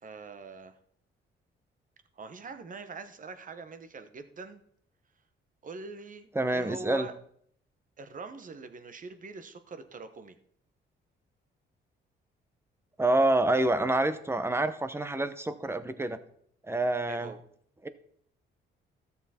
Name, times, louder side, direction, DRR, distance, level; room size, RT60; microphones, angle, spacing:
voice 1, 0.0-0.8 2.2-4.6 5.6-7.2 8.0-10.3 17.1-17.4, right 4 dB, 40° right, 10 dB, 1.1 m, -43 dB
voice 2, 6.3-7.1 13.0-16.2 16.7-17.3 17.8-17.9, right 2 dB, 10° right, 11 dB, 0.8 m, -27 dB
13.0 x 7.0 x 4.3 m, 0.64 s
cardioid pair, 90°, 20 cm